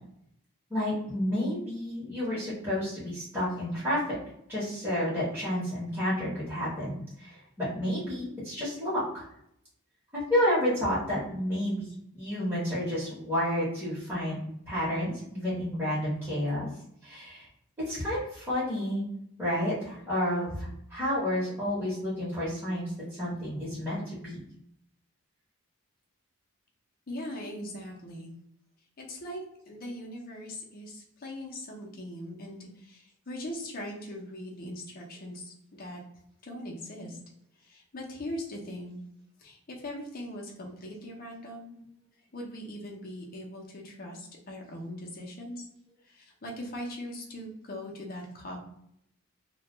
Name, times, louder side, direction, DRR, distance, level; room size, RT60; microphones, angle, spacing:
voice 1, 0.7-4.2 4.5-9.2 10.1-14.4 14.7-16.7 17.0-17.5 17.9-19.0 19.4-22.9 23.2-24.4, equal, 10° right, -11 dB, 0.9 m, -30 dB
voice 2, 27.1-28.3 29.0-36.0 36.4-37.2 37.6-39.0 39.4-41.8 42.3-45.6 46.1-48.6, left 1 dB, 40° left, -1 dB, 0.6 m, -40 dB
2.4 x 2.1 x 2.9 m, 0.74 s
head